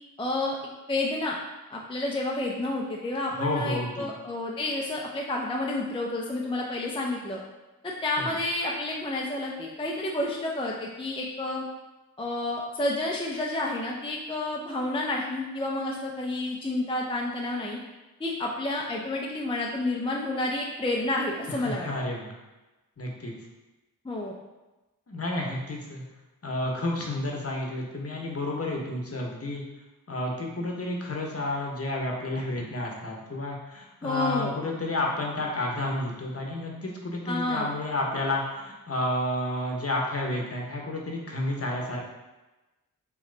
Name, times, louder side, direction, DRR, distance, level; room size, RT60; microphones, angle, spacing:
voice 1, 0.2-0.6 0.9-1.4 1.7-7.4 7.8-11.6 12.2-17.8 18.2-21.9 24.0-24.3 34.0-34.5 37.3-37.7, left 2 dB, 15° left, -2 dB, 0.5 m, -30 dB
voice 2, 3.3-4.1 8.2-8.3 21.6-22.3 23.0-23.3 25.1-26.0 26.4-29.6 30.1-42.0, left 1 dB, 40° left, -1 dB, 0.9 m, -31 dB
3.1 x 3.0 x 3.8 m, 1.1 s
cardioid pair, 45°, 35 cm